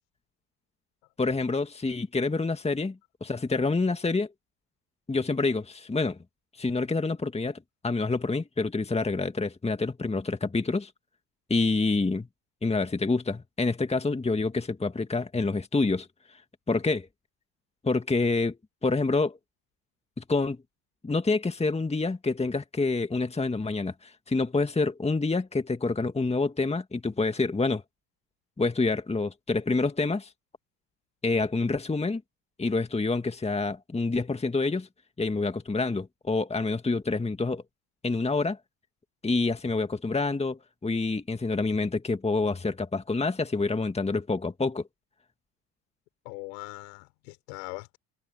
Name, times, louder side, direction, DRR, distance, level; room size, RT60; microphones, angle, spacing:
voice 1, 1.2-4.3 5.1-6.2 6.6-10.9 11.5-12.3 12.6-16.1 16.7-17.1 17.8-18.6 18.8-19.4 20.2-20.6 21.0-27.8 28.6-30.3 31.2-32.2 32.6-34.9 35.2-37.6 38.0-38.6 39.2-44.8, left 3 dB, 15° left, 2.0 m, -27 dB
voice 2, 46.2-48.0, left 31 dB, 75° left, 5.8 m, -41 dB
hypercardioid pair, 75°, 47 cm